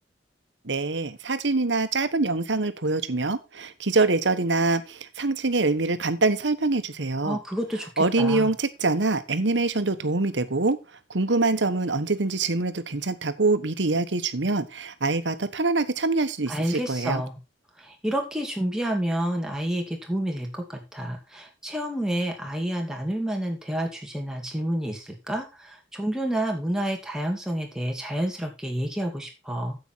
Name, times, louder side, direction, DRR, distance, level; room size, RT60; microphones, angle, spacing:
voice 1, 0.6-7.4 8.0-10.8 11.1-17.2, right 3 dB, 90° right, 1.2 m, -24 dB
voice 2, 7.2-8.5 16.5-17.4 17.8-29.8, right 1 dB, 5° right, 2.5 m, -29 dB
9.6 x 8.1 x 4.5 m
head